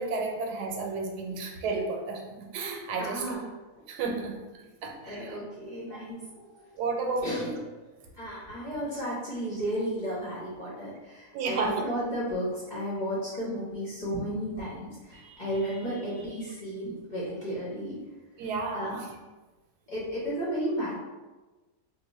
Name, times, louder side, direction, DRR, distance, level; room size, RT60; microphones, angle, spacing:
voice 1, 0.0-3.4 3.9-5.4 5.9-6.0 6.7-7.6 11.3-11.8 18.4-19.1, right 3 dB, 85° right, 2 dB, 1.1 m, -32 dB
voice 2, 3.0-3.5 5.1-6.6 7.2-7.5 8.2-18.0 18.7-19.0 19.9-20.9, equal, 40° left, -8 dB, 0.7 m, -33 dB
2.8 x 2.0 x 4.0 m, 1.2 s
omnidirectional pair, 1.7 m